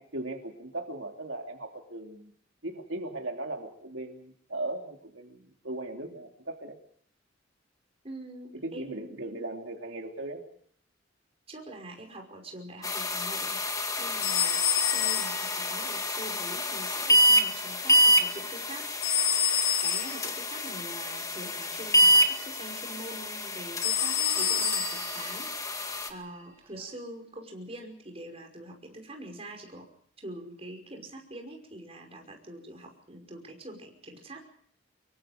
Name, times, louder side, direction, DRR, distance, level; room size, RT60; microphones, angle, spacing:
voice 1, 0.0-2.3 2.6-6.8 8.6-10.4, right 2 dB, 85° right, 2 dB, 3.0 m, -38 dB
voice 2, 8.0-9.2 11.5-19.3 19.8-29.9 30.2-34.5, right 1 dB, 30° right, 2 dB, 5.5 m, -44 dB
sound 1, 12.8-26.1, equal, 20° left, 2.1 m, -27 dB
sound 2, 14.2-15.8 19.0-20.3 23.8-25.2, left 9 dB, 60° left, 4.6 m, -28 dB
Bell, 24.2-26.9, right 8 dB, 15° right, 1.9 m, -42 dB
25.0 x 23.5 x 5.1 m, 0.63 s
head